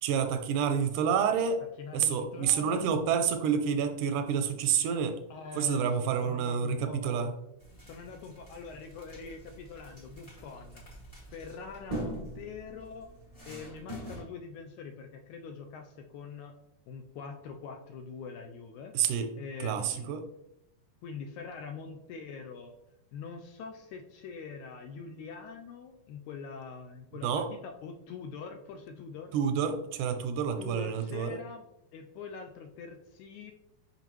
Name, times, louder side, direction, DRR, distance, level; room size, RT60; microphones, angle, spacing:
voice 1, 0.0-1.6 1.9-5.2 5.5-7.3 18.9-19.3 19.6-20.2 27.2-27.5 29.3-31.4, right 7 dB, 80° right, 6 dB, 2.0 m, -28 dB
voice 2, 1.8-2.9 5.3-7.4 7.8-10.8 11.1-13.1 13.4-16.5 16.9-18.9 19.4-20.2 21.0-22.7 23.1-29.3 30.6-31.7 31.9-33.5, left 5 dB, 80° left, 5 dB, 1.8 m, -44 dB
sound 1, 7.6-14.2, right 1 dB, 15° left, 1.2 m, -43 dB
5.7 x 5.5 x 3.0 m, 0.82 s
omnidirectional pair, 3.7 m